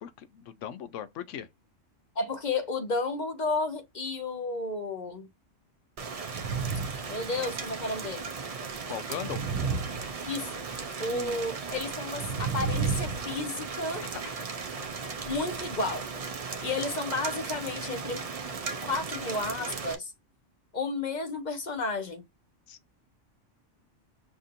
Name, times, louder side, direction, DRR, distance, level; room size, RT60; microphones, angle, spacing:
voice 1, 0.0-1.5 8.9-9.6 11.1-11.4 14.0-14.3 22.7-22.8, left 9 dB, 80° left, 1.0 m, -39 dB
voice 2, 2.2-5.3 7.1-8.3 10.2-10.6 11.0-14.0 15.2-16.1 16.6-18.3 18.8-20.1 20.7-22.2, left 3 dB, 45° left, 0.8 m, -32 dB
Rain, 6.0-19.9, right 5 dB, 55° right, 0.4 m, -37 dB
sound 1, 6.2-7.1 7.4-7.7 9.1-10.7 12.1-13.4, right 5 dB, 85° right, 1.0 m, -32 dB
5.9 x 2.6 x 2.5 m
omnidirectional pair, 1.3 m